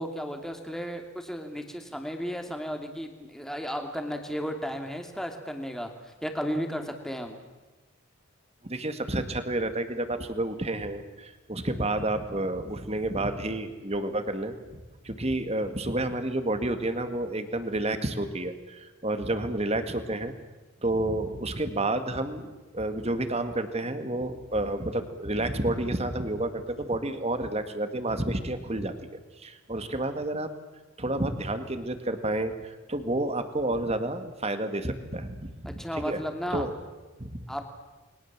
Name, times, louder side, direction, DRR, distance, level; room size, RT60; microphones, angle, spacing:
voice 1, 0.0-7.4 35.8-36.7 37.5-37.6, equal, ahead, 4 dB, 2.5 m, -34 dB
voice 2, 8.6-20.4 20.8-30.5 31.0-36.2 36.5-36.8 37.2-37.5, right 1 dB, 30° right, 9 dB, 2.0 m, -30 dB
29.5 x 22.0 x 7.4 m, 1.2 s
head